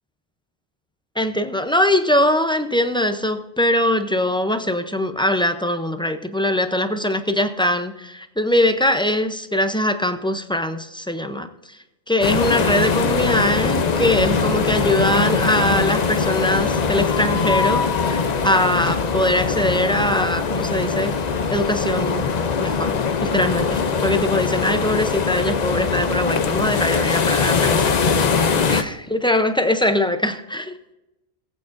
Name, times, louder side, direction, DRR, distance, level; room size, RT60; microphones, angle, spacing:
voice 1, 1.2-11.5 12.1-21.1 21.5-22.3 22.6-22.9 23.2-30.7, left 1 dB, 10° left, 8 dB, 0.3 m, -22 dB
sound 1, 12.2-28.8, left 5 dB, 45° left, 0.7 m, -21 dB
sound 2, 17.1-20.3, left 7 dB, 70° left, 1.0 m, -29 dB
18.5 x 8.5 x 2.6 m, 0.96 s
omnidirectional pair, 1.1 m